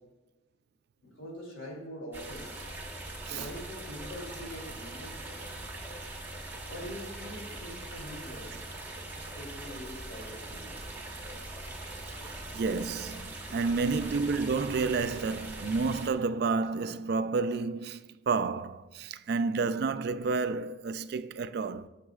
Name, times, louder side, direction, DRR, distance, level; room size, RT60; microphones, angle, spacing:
voice 1, 1.0-2.5 3.3-5.5 6.7-8.6 9.1-10.8 13.5-13.8, equal, 90° left, 3.0 m, -44 dB
sound 1, 2.1-16.1, right 2 dB, 10° right, 1.1 m, -41 dB
voice 2, 12.2-21.9, right 4 dB, 55° right, 0.3 m, -30 dB
17.0 x 6.4 x 2.4 m
head